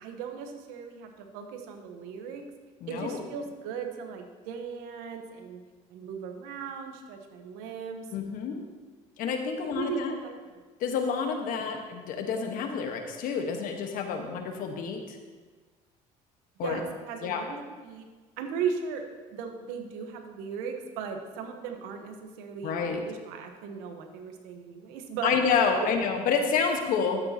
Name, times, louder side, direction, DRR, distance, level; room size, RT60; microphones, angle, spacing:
voice 1, 0.0-2.4 2.9-5.6 5.9-8.1 9.6-10.6 11.5-11.7 16.6-18.1 18.4-19.0 19.3-25.4, right 6 dB, 80° right, 5 dB, 1.1 m, -37 dB
voice 2, 2.8-3.2 8.1-8.6 9.2-10.1 10.8-15.2 16.6-16.8 17.2-17.4 22.6-23.0 25.2-27.2, left 6 dB, 65° left, 4 dB, 1.3 m, -28 dB
12.0 x 8.3 x 2.9 m, 1.4 s
supercardioid pair, 90°, 15 cm